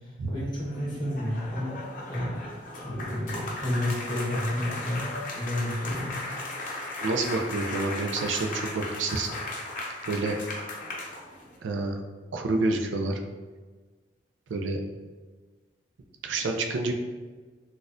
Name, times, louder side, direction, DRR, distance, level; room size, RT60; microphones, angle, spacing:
voice 1, 0.0-1.8 2.1-2.4 2.8-5.1 5.3-6.2, left 1 dB, 25° left, -6 dB, 1.2 m, -31 dB
sound 1, 0.6-11.6, left 2 dB, 45° left, 0.7 m, -37 dB
voice 2, 7.0-9.3 10.1-10.4 11.6-12.0 12.3-13.2 14.5-14.8 16.2-16.9, right 3 dB, 85° right, 4 dB, 0.4 m, -28 dB
4.0 x 2.3 x 2.5 m, 1.4 s
head